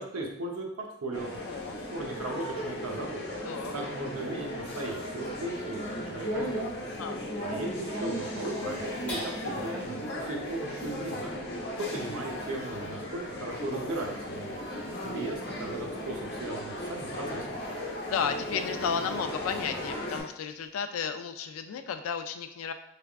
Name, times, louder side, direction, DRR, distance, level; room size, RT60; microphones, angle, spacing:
voice 1, 0.0-3.2 3.7-6.6 7.4-11.3 11.8-14.6 15.0-17.6, right 2 dB, 85° right, 0 dB, 0.7 m, -37 dB
sound 1, 1.1-20.2, equal, 50° left, 0.9 m, -36 dB
voice 2, 1.4-1.8 3.4-3.7 7.0-7.2 10.0-10.3 12.7-13.1 14.8-15.1 18.0-22.7, left 7 dB, 80° left, 8 dB, 0.3 m, -34 dB
sound 2, 8.2-8.3 8.5-10.7 11.0-14.0 14.2-17.2 17.5-17.6 18.1-19.6 19.9-20.7, right 2 dB, 20° right, 0.4 m, -52 dB
sound 3, 9.1-15.8 16.3-16.4 16.8-17.2, left 1 dB, 5° left, 1.0 m, -48 dB
3.4 x 3.3 x 2.3 m, 0.77 s
head